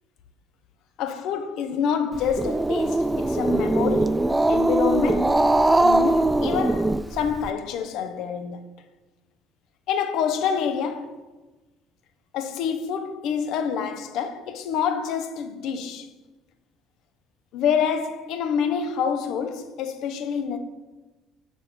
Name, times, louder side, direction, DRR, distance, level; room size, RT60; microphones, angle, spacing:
voice 1, 1.0-5.4 5.8-8.6 9.9-11.1 12.3-16.1 17.5-20.6, left 7 dB, 60° left, 0.7 m, -27 dB
Growling, 2.1-7.5, right 2 dB, 10° right, 0.3 m, -21 dB
6.8 x 5.3 x 5.3 m
figure-of-eight pair, 55°, 0 cm